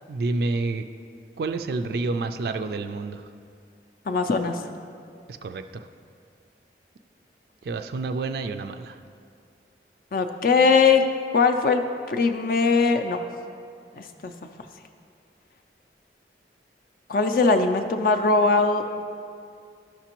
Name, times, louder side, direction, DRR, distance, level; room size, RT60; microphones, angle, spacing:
voice 1, 0.1-0.8 1.4-3.2 5.3-5.9 7.6-9.0, right 3 dB, 60° right, 8 dB, 0.3 m, -29 dB
voice 2, 4.1-4.6 10.1-11.0 11.3-13.2 14.0-14.3 17.1-19.0, left 4 dB, 50° left, 7 dB, 0.4 m, -21 dB
12.0 x 5.9 x 2.9 m, 2.3 s
head